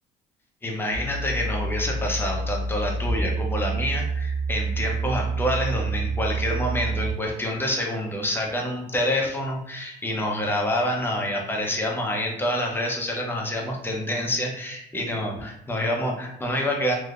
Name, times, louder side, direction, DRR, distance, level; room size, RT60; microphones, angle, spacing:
voice 1, 0.6-16.9, left 1 dB, 15° left, 0 dB, 0.7 m, -27 dB
sound 1, 0.9-7.1, right 3 dB, 50° right, 0.7 m, -28 dB
3.4 x 2.7 x 2.5 m, 0.75 s
cardioid pair, 110°, 17 cm